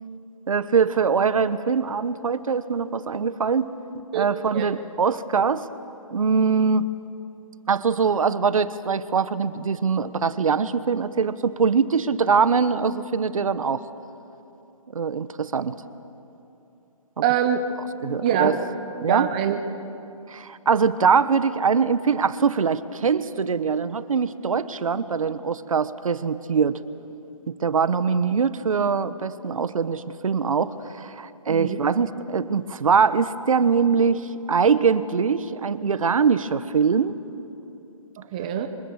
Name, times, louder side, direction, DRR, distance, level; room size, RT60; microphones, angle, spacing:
voice 1, 0.5-3.7 4.1-5.7 6.1-6.9 7.7-13.8 14.9-15.7 17.2-17.3 18.0-18.5 19.0-19.3 20.3-26.8 27.5-37.1, right 5 dB, 70° right, 14 dB, 1.1 m, -22 dB
voice 2, 17.2-17.7 18.2-18.6 19.1-19.6 31.5-31.8 38.2-38.7, right 9 dB, 15° right, 7 dB, 0.5 m, -24 dB
26.0 x 25.0 x 6.5 m, 2.8 s
hypercardioid pair, 170°, 18 cm